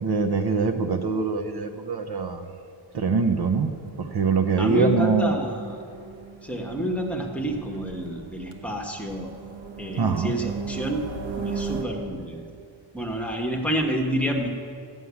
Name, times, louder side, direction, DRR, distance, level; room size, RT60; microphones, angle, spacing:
voice 1, 0.0-2.5 2.9-3.7 4.0-5.4 10.0-10.3, right 4 dB, 55° right, 7 dB, 0.8 m, -23 dB
sound 1, 3.4-11.8, right 5 dB, 75° right, 1.4 m, -38 dB
voice 2, 4.6-5.8 6.4-9.3 9.8-11.1 11.4-12.5 12.9-14.5, right 1 dB, 5° left, 0 dB, 1.3 m, -28 dB
14.0 x 7.3 x 9.6 m, 2.4 s
wide cardioid pair, 165°, 47 cm